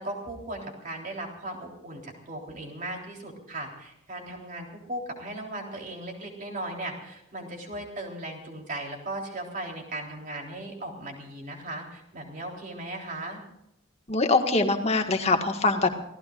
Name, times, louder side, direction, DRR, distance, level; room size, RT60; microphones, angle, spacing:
voice 1, 0.0-13.4, right 1 dB, 40° right, 1 dB, 3.8 m, -37 dB
voice 2, 14.1-16.0, left 3 dB, 30° left, 4 dB, 1.8 m, -23 dB
29.0 x 17.0 x 2.5 m, 0.84 s
head